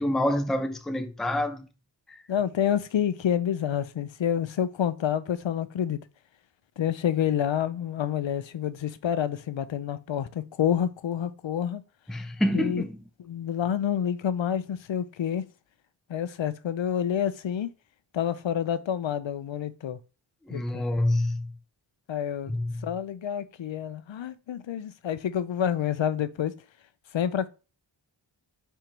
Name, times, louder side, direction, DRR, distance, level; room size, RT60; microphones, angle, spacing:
voice 1, 0.0-1.7 2.1-2.2 12.1-13.0 20.5-21.5 22.5-22.9, left 1 dB, ahead, 0.6 m, -27 dB
voice 2, 2.3-6.0 6.8-11.8 12.5-12.8 13.2-15.4 16.1-17.7 18.1-20.0 20.5-20.8 22.1-22.5 22.8-26.5 27.1-27.5, left 9 dB, 70° left, 0.7 m, -28 dB
4.5 x 4.5 x 5.2 m
wide cardioid pair, 85°, 47 cm